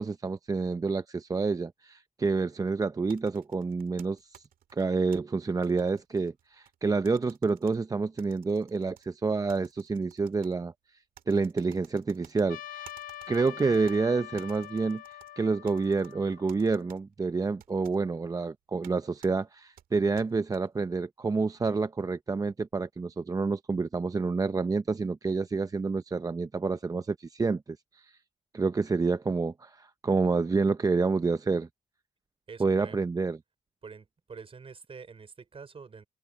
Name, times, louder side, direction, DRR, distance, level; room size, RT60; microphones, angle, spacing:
voice 1, 0.0-4.4 4.7-10.7 11.3-12.9 13.3-28.2 28.5-31.7 32.6-33.4, right 4 dB, 25° right, 0.6 m, -28 dB
sound 1, 3.1-5.2 5.6-6.8 7.1-7.8 8.2-9.1 9.5-10.5 11.2-12.5 12.9-14.0 14.4-15.3 15.7-16.1 16.5-17.0 17.6-18.0 18.8-18.9 19.2-19.3 19.8-20.6, right 11 dB, 85° right, 1.9 m, -55 dB
Trumpet, 12.5-16.9, left 11 dB, 85° left, 0.9 m, -44 dB
voice 2, 32.5-33.0 33.8-36.0, right 5 dB, 40° right, 4.9 m, -46 dB
cardioid pair, 85°, 14 cm